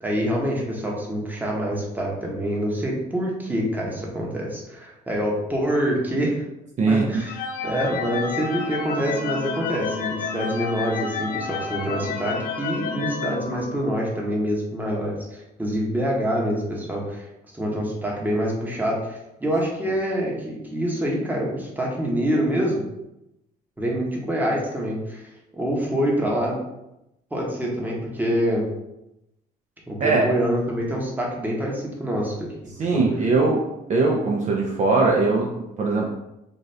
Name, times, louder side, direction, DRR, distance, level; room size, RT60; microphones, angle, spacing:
voice 1, 0.0-6.4 6.9-7.3 7.6-17.3 17.5-22.8 23.8-26.5 27.3-28.6 29.9-32.5 32.9-33.0, equal, 10° right, -2 dB, 1.0 m, -26 dB
voice 2, 6.8-7.2 30.0-30.3 32.8-36.1, right 3 dB, 45° right, 0 dB, 0.6 m, -21 dB
sound 1, 7.2-14.2, left 5 dB, 60° left, 0.6 m, -30 dB
4.0 x 2.4 x 3.2 m, 0.89 s
cardioid pair, 110°, 17 cm